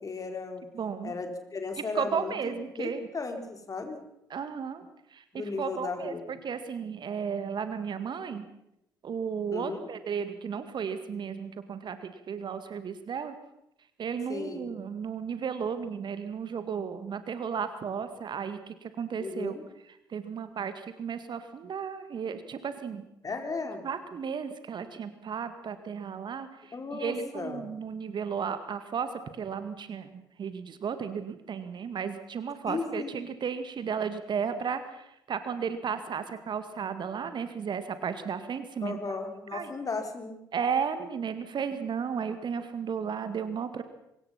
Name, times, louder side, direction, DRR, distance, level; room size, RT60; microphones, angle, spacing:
voice 1, 0.0-0.6 1.0-4.0 5.3-6.4 9.5-9.9 14.3-14.7 19.2-19.6 23.2-23.8 26.7-27.7 32.7-33.2 38.8-40.4, left 4 dB, 30° left, 5 dB, 4.5 m, -35 dB
voice 2, 0.7-1.2 1.9-3.1 4.3-4.9 5.1-8.5 9.0-13.3 14.0-19.5 20.1-23.0 23.8-39.0 39.5-39.7 40.5-43.8, right 6 dB, 45° right, 10 dB, 2.0 m, -34 dB
25.0 x 21.0 x 5.9 m, 0.83 s
figure-of-eight pair, 45°, 11 cm